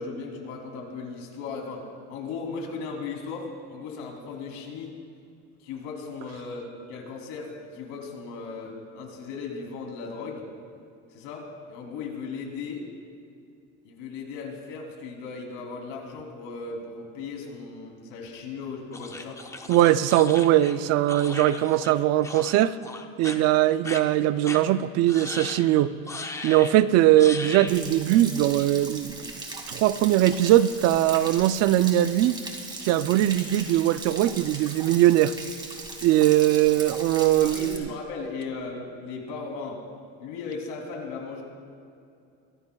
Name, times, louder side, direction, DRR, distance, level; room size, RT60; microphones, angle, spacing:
voice 1, 0.0-5.0 5.6-10.5 11.1-12.8 13.8-19.4 37.4-39.8 40.2-41.4, left 4 dB, 85° left, 0 dB, 3.1 m, -37 dB
sound 1, 18.9-22.0 22.2-22.6 22.8-23.4 23.8-24.0 24.4-24.6 25.1-25.7 26.1-26.7 27.2-27.8, left 3 dB, 10° left, 0.6 m, -37 dB
voice 2, 19.7-22.8 23.2-26.0 26.4-29.3 29.7-32.4 32.8-35.3 36.0-37.9, right 13 dB, 55° right, 14 dB, 0.4 m, -21 dB
Stream / Splash splatter / Trickle dribble, 27.7-37.8, right 2 dB, 15° right, 1.7 m, -39 dB
23.0 x 16.0 x 2.3 m, 2.5 s
cardioid pair, 150°, 30 cm